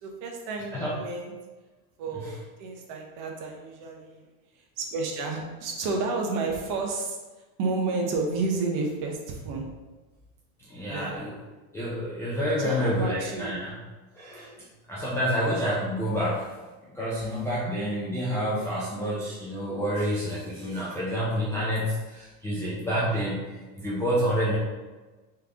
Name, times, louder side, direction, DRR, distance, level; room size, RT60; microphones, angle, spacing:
voice 1, 0.0-1.3 2.0-4.3 4.8-7.2 7.6-9.7 10.9-11.2 12.6-13.5, right 3 dB, 45° right, 1 dB, 0.9 m, -31 dB
voice 2, 10.7-11.4 11.7-13.8 14.1-14.5 14.9-16.5 16.8-24.6, equal, 5° left, -9 dB, 0.3 m, -28 dB
3.5 x 3.4 x 3.7 m, 1.2 s
supercardioid pair, 135°, 45 cm